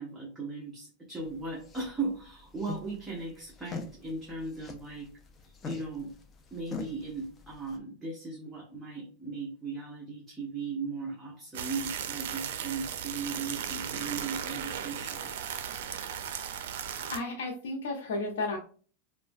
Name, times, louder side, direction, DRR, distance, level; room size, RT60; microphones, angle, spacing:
voice 1, 0.0-5.1 5.4-6.1 6.5-15.3, right 4 dB, 10° right, -3 dB, 0.7 m, -37 dB
sound 1, 1.2-7.8, left 3 dB, 25° left, 0.4 m, -44 dB
sound 2, 11.5-17.2, right 9 dB, 75° right, 0.4 m, -36 dB
voice 2, 16.9-18.6, left 2 dB, 80° left, -1 dB, 0.6 m, -33 dB
3.1 x 2.2 x 2.5 m, 0.40 s
supercardioid pair, 140°, 0 cm